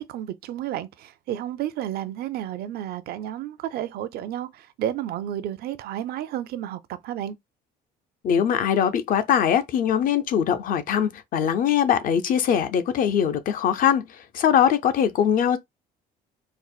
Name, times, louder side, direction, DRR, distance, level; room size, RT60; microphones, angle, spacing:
voice 1, 0.0-7.4, right 11 dB, 65° right, 0.5 m, -31 dB
voice 2, 8.2-14.1 14.3-15.6, left 8 dB, 55° left, 0.5 m, -21 dB
4.3 x 2.1 x 2.3 m
cardioid pair, 110°, 17 cm